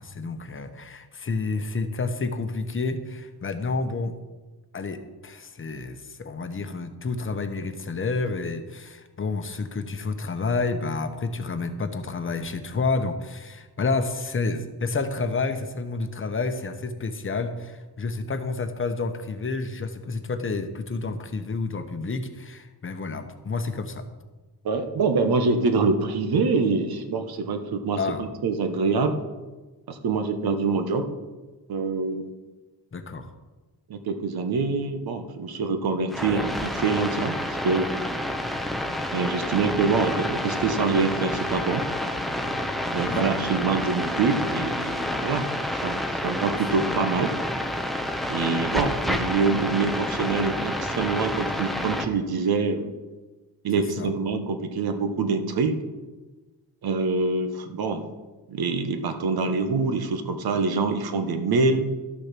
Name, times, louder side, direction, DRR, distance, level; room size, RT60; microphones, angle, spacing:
voice 1, 0.0-4.1 4.7-24.1 28.0-28.2 32.9-33.3 43.1-43.2 54.0-54.1, left 3 dB, 30° left, 8 dB, 1.0 m, -29 dB
voice 2, 24.6-29.2 29.9-31.1 31.7-32.2 33.9-37.9 39.1-41.9 42.9-45.5 45.8-47.3 48.3-52.9 53.6-55.8 56.8-58.0 58.5-61.9, right 4 dB, 60° right, 7 dB, 1.3 m, -25 dB
sound 1, 36.1-52.1, left 1 dB, ahead, 0.8 m, -29 dB
12.5 x 6.5 x 5.9 m, 1.2 s
cardioid pair, 110°, 41 cm